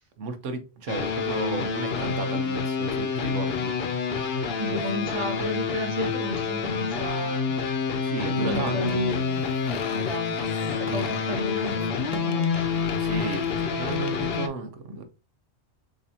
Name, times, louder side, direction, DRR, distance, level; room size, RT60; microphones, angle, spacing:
voice 1, 0.2-3.8 8.0-9.0 13.0-15.0, right 4 dB, 75° right, 1.2 m, -33 dB
sound 1, 0.9-14.5, left 5 dB, 60° left, 0.9 m, -28 dB
voice 2, 4.6-7.5 8.3-9.4 9.9-12.8, equal, 25° right, 1.2 m, -32 dB
sound 2, 6.5-13.5, right 1 dB, 5° right, 0.9 m, -47 dB
sound 3, 8.8-14.2, left 8 dB, 85° left, 1.0 m, -44 dB
6.2 x 2.7 x 2.8 m
omnidirectional pair, 1.3 m